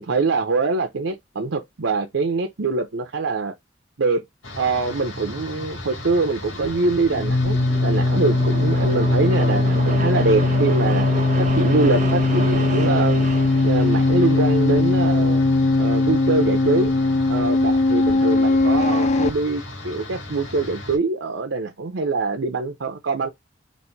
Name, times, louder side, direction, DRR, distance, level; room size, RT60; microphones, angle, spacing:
voice 1, 0.0-3.5 4.0-4.2 4.6-11.1 11.4-13.3 13.6-15.4 15.8-16.9 17.3-23.3, right 3 dB, 85° right, 0.7 m, -24 dB
sound 1, 4.4-21.0, left 1 dB, 75° left, 1.8 m, -37 dB
sound 2, 6.5-19.3, left 2 dB, 40° left, 0.4 m, -20 dB
sound 3, 7.1-14.9, right 3 dB, 40° right, 0.8 m, -30 dB
4.1 x 2.6 x 4.4 m
head